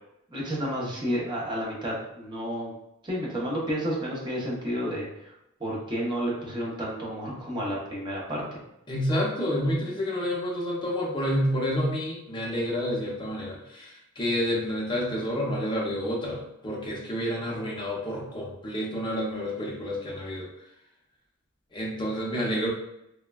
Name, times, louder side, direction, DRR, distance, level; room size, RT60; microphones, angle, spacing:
voice 1, 0.3-2.7 3.0-5.3 5.6-8.6, equal, 20° right, -4 dB, 0.7 m, -31 dB
voice 2, 8.9-20.5 21.7-22.7, equal, 20° left, -3 dB, 0.6 m, -29 dB
3.3 x 2.1 x 2.2 m, 0.83 s
head